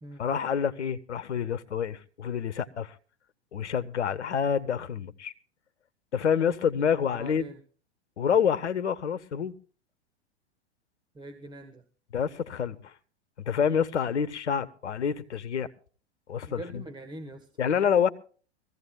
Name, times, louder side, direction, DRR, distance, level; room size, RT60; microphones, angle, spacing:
voice 1, 0.2-2.9 3.5-5.3 6.1-7.4 8.2-9.5 12.1-12.9 13.4-15.7 16.3-16.8 17.6-18.1, left 7 dB, 80° left, 1.1 m, -27 dB
voice 2, 7.0-7.6 11.1-11.8 16.5-17.5, right 1 dB, 15° right, 1.2 m, -43 dB
22.5 x 15.5 x 2.3 m
hypercardioid pair, 105°, 34 cm